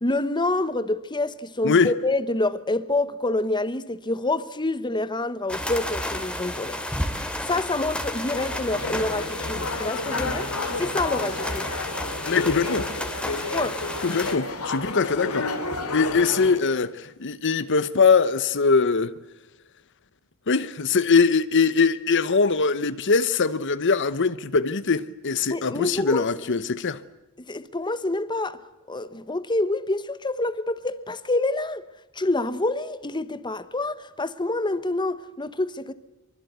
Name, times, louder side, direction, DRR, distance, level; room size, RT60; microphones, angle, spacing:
voice 1, 0.0-6.8 7.5-10.5 10.8-11.7 13.5-13.8 25.5-26.3 27.5-28.6 28.9-31.9 32.1-35.9, left 2 dB, 20° left, 1.1 m, -27 dB
sound 1, 5.5-14.4, left 1 dB, 5° left, 2.7 m, -32 dB
sound 2, 8.3-16.6, left 3 dB, 85° left, 3.6 m, -31 dB
voice 2, 12.3-12.9 14.0-15.5 15.9-19.2 20.5-27.0, left 4 dB, 55° left, 0.9 m, -22 dB
24.5 x 24.5 x 8.1 m
head